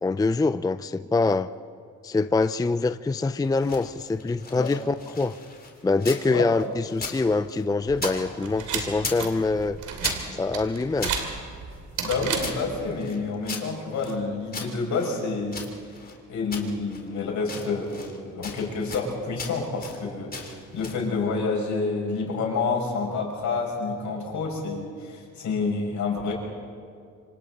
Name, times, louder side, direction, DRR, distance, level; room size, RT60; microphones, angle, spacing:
voice 1, 0.0-1.5 2.0-5.3 5.8-9.8 10.3-11.1, left 3 dB, 10° left, 12 dB, 0.5 m, -24 dB
sound 1, 3.4-6.3 6.6-8.2 8.4-9.3 9.6-11.2 11.7-14.2 14.5-16.2 16.5-17.1 17.4-18.2 18.4-19.1 19.4-20.0 20.3-21.1, left 4 dB, 30° left, 3.6 m, -38 dB
sound 2, 7.9-12.9, right 6 dB, 80° right, 2.9 m, -33 dB
voice 2, 12.0-15.6 16.3-26.3, left 4 dB, 70° left, -1 dB, 6.8 m, -28 dB
27.0 x 26.0 x 4.2 m, 2.2 s
cardioid pair, 90°, 30 cm